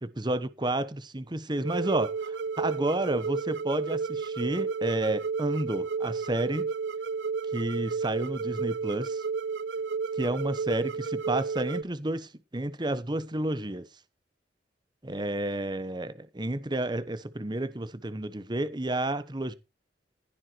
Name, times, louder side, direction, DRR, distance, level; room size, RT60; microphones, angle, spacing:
voice 1, 0.0-6.7 7.5-9.2 10.2-13.9 15.0-19.5, right 1 dB, 25° right, 1.0 m, -31 dB
sound 1, 1.6-11.8, right 5 dB, 80° right, 0.5 m, -32 dB
15.5 x 7.3 x 4.6 m
head